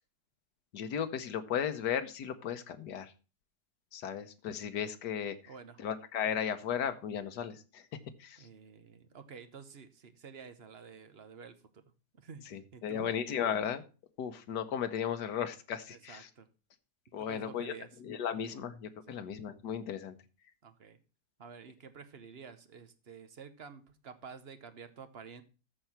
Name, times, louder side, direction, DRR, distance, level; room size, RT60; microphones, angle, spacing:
voice 1, 0.7-3.1 3.9-5.4 5.8-7.8 8.2-8.5 12.5-13.8 14.2-16.3 17.1-17.7 18.0-20.2, left 8 dB, 90° left, 9 dB, 1.6 m, -35 dB
voice 2, 5.4-5.8 8.4-11.8 12.2-12.4 12.7-13.1 15.9-16.5 17.2-17.9 19.1-19.2 20.6-21.0 21.4-25.4, right 6 dB, 45° right, 10 dB, 1.1 m, -50 dB
13.5 x 4.6 x 5.8 m, 0.34 s
omnidirectional pair, 1.7 m